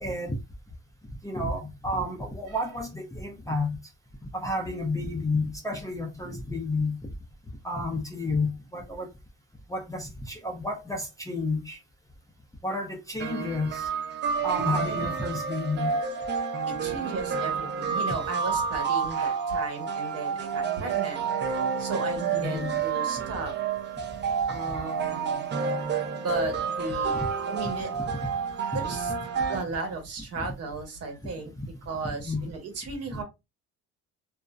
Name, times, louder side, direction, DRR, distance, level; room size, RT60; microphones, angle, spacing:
voice 1, 0.0-0.4 1.2-3.8 4.2-7.0 7.6-9.1 9.7-11.8 12.6-13.9 14.4-16.0 22.3-22.8 31.6-31.7 32.2-32.5 33.1-33.2, left 2 dB, 10° left, 0.5 m, -31 dB
sound 1, 13.2-29.6, right 6 dB, 35° right, 0.6 m, -29 dB
voice 2, 14.7-15.1 16.7-21.2 21.8-23.5 24.5-25.5 26.2-27.9 28.7-29.1 29.5-31.5 31.9-33.2, right 3 dB, 50° right, 1.1 m, -35 dB
2.5 x 2.1 x 2.3 m
cardioid pair, 100°, 32 cm